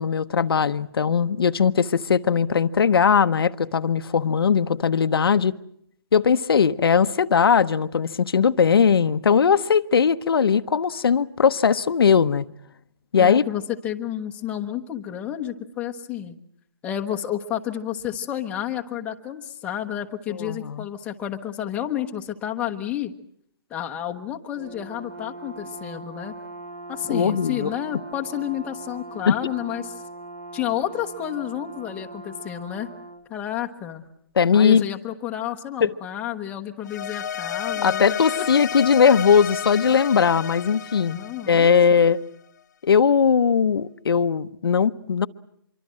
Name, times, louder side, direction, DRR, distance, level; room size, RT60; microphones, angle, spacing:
voice 1, 0.0-5.6 6.1-12.4 13.1-13.5 20.3-20.8 27.1-27.7 29.3-29.4 34.4-34.9 35.8-35.9 37.8-41.2 41.5-42.2 42.8-45.3, left 6 dB, 70° left, 1.0 m, -19 dB
voice 2, 13.2-16.4 16.8-23.1 23.7-26.3 26.9-29.9 30.5-32.9 33.3-34.0 34.5-38.2 41.1-42.1, left 11 dB, 10° left, 1.1 m, -30 dB
Brass instrument, 24.5-33.3, right 2 dB, 30° right, 1.8 m, -40 dB
sound 1, 36.8-42.2, left 9 dB, 45° left, 1.1 m, -31 dB
25.5 x 24.0 x 7.6 m
hypercardioid pair, 165°, 13 cm